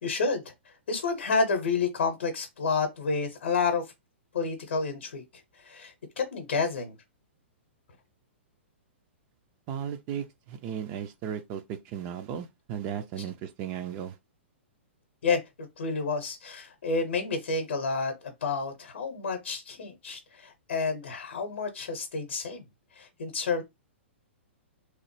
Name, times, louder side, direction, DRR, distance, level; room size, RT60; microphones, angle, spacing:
voice 1, 0.0-3.9 4.3-5.2 5.6-7.0 15.2-22.6 22.9-23.6, left 4 dB, 60° left, 0.7 m, -30 dB
voice 2, 9.7-14.2, right 9 dB, 30° right, 0.3 m, -36 dB
3.0 x 2.0 x 3.1 m
figure-of-eight pair, 110°, 7 cm